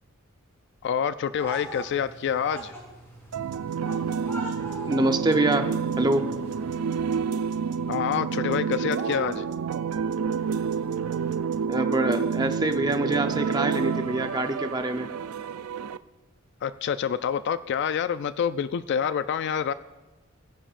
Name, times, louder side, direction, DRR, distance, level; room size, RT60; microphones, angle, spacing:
voice 1, 0.8-2.7 7.9-9.5 16.6-19.7, left 8 dB, 55° left, 13 dB, 0.3 m, -27 dB
sound 1, 1.4-6.8, right 1 dB, 10° left, 3.6 m, -42 dB
sound 2, 3.3-16.0, right 6 dB, 85° right, 0.4 m, -29 dB
voice 2, 4.9-5.7 6.0-6.3 11.7-15.1, right 2 dB, 20° right, 6 dB, 0.7 m, -25 dB
20.0 x 10.0 x 2.5 m, 1.1 s
head